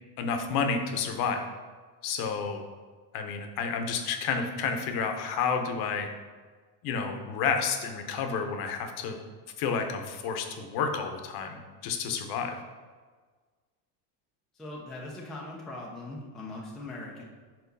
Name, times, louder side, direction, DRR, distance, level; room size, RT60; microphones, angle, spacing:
voice 1, 0.2-1.4 2.0-2.6 3.1-6.1 6.8-9.2 9.6-12.6, left 5 dB, 55° left, 5 dB, 0.8 m, -30 dB
voice 2, 14.5-17.2, left 2 dB, ahead, -3 dB, 0.4 m, -40 dB
4.6 x 3.9 x 5.3 m, 1.5 s
cardioid pair, 150°, 46 cm